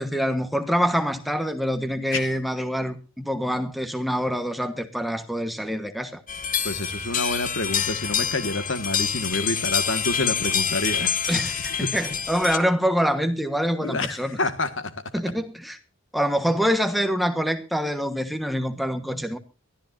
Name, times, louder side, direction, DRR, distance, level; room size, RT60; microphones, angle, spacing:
voice 1, 0.0-6.2 11.3-14.4 15.1-15.8 16.1-19.4, equal, ahead, 1.3 m, -25 dB
sound 1, 6.3-12.6, left 7 dB, 40° left, 1.1 m, -27 dB
voice 2, 6.6-11.1 11.8-11.9 13.8-14.9, left 2 dB, 65° left, 1.8 m, -28 dB
23.5 x 14.0 x 2.6 m
head